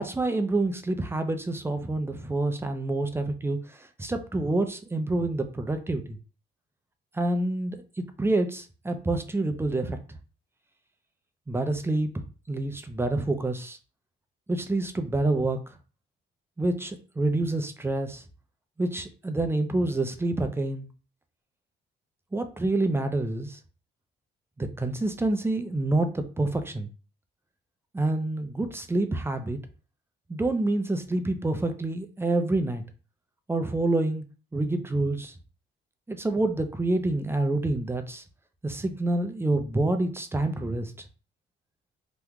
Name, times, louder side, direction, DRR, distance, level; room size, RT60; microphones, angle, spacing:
voice 1, 0.0-6.2 7.1-10.0 11.5-12.1 12.5-13.8 14.5-15.6 16.6-18.2 18.8-20.9 22.3-23.6 24.6-26.9 27.9-29.6 30.3-32.8 33.5-34.2 34.5-35.4 36.1-38.2 38.6-41.1, right 2 dB, 10° right, 7 dB, 0.5 m, -27 dB
3.0 x 2.3 x 3.5 m, 0.36 s
cardioid pair, 90°, 20 cm